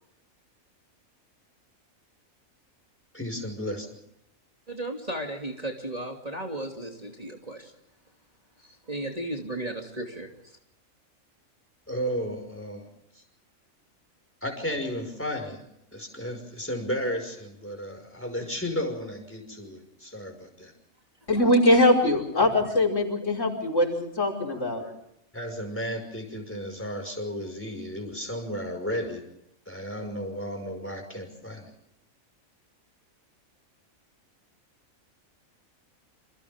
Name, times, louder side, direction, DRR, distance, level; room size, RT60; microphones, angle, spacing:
voice 1, 3.1-3.9 11.9-12.9 13.1-13.2 14.4-20.7 25.3-29.2 29.7-31.7, equal, 10° left, 4 dB, 5.6 m, -33 dB
voice 2, 4.7-7.7 8.6-10.6, right 1 dB, 25° right, 1 dB, 2.9 m, -35 dB
voice 3, 21.3-24.9, left 1 dB, 60° left, 4 dB, 5.7 m, -22 dB
28.5 x 28.5 x 3.7 m, 0.81 s
omnidirectional pair, 1.4 m